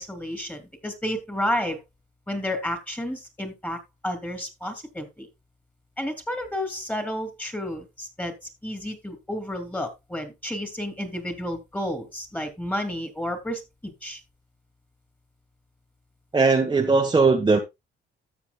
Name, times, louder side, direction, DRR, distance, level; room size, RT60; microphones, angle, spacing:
voice 1, 0.0-1.8 2.3-5.3 6.0-8.3 8.6-14.2, equal, 10° left, 2.8 m, -31 dB
voice 2, 16.3-17.6, right 4 dB, 20° right, 1.2 m, -19 dB
13.0 x 7.5 x 2.3 m
cardioid pair, 90°, 20 cm